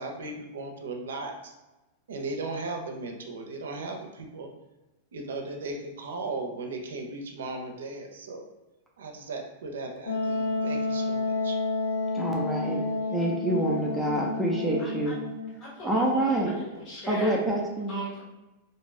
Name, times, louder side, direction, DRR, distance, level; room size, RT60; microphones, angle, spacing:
voice 1, 0.0-1.5 2.1-4.5 5.1-8.4 9.0-11.6, right 3 dB, 85° right, 3 dB, 0.5 m, -37 dB
Wind instrument woodwind instrument, 10.1-15.6, left 3 dB, 85° left, 0.7 m, -30 dB
voice 2, 12.1-12.8 13.1-15.2 15.8-16.6 17.1-18.1, right 1 dB, 5° right, -2 dB, 0.5 m, -27 dB
voice 3, 14.8-15.1 15.6-16.3 16.6-17.4 17.9-18.2, equal, 35° left, -5 dB, 1.2 m, -40 dB
2.6 x 2.3 x 3.1 m, 1.1 s
hypercardioid pair, 125°, 0 cm